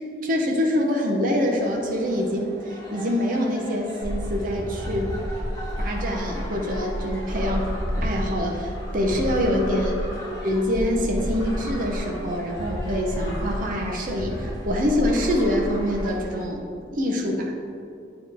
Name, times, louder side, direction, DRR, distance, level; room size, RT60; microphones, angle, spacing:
voice 1, 0.2-5.1 5.8-7.7 8.0-10.0 10.4-16.7 16.9-17.5, equal, 45° right, -1 dB, 0.7 m, -25 dB
sound 1, 1.4-16.4, equal, 20° left, 1.4 m, -43 dB
sound 2, 4.0-16.1, equal, 15° right, 1.6 m, -31 dB
9.2 x 3.1 x 4.6 m, 2.5 s
head